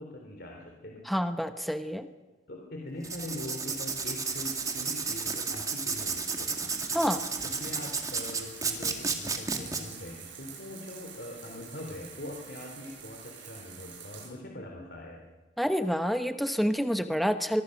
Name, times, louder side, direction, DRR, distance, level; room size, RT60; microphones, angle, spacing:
voice 1, 0.0-1.1 2.5-6.6 7.4-15.3, left 1 dB, 60° left, 1 dB, 3.1 m, -42 dB
voice 2, 1.1-2.1 6.9-7.2 15.6-17.6, equal, ahead, 9 dB, 1.0 m, -28 dB
Writing, 3.0-9.8, right 5 dB, 20° right, 2.2 m, -32 dB
sound 1, 3.9-14.3, right 6 dB, 80° right, 7.1 m, -47 dB
24.0 x 23.0 x 6.5 m, 1.2 s
head